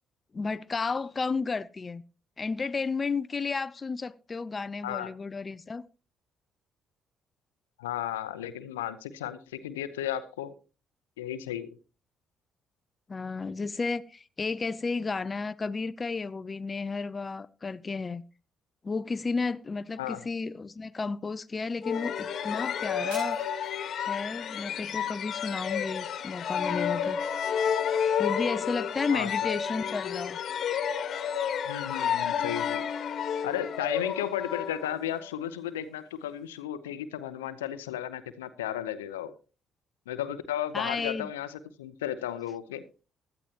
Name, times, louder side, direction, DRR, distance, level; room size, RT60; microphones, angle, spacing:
voice 1, 0.3-2.0 2.4-5.8 13.1-18.2 18.8-23.4 24.1-27.2 28.2-30.4 40.7-41.3, left 4 dB, 35° left, 0.6 m, -32 dB
voice 2, 7.8-10.5 11.2-11.7 20.0-20.2 29.1-29.3 31.7-32.8 33.4-39.3 40.1-42.8, left 11 dB, 90° left, 0.7 m, -34 dB
sound 1, 21.8-35.3, left 8 dB, 60° left, 1.5 m, -31 dB
Shatter, 23.1-24.4 24.9-25.4 25.9-26.0, right 1 dB, 85° right, 7.8 m, -47 dB
16.0 x 12.0 x 2.9 m
hypercardioid pair, 50°, 0 cm